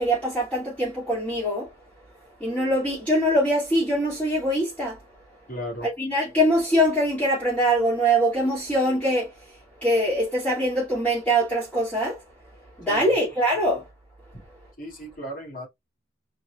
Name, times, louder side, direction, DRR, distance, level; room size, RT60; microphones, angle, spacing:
voice 1, 0.0-1.7 2.4-5.0 5.8-9.3 9.8-12.2 12.8-13.9, equal, 10° left, 2.4 m, -23 dB
voice 2, 5.5-5.9 12.9-13.2 14.8-15.7, equal, 45° left, 2.3 m, -35 dB
4.5 x 4.3 x 2.4 m
head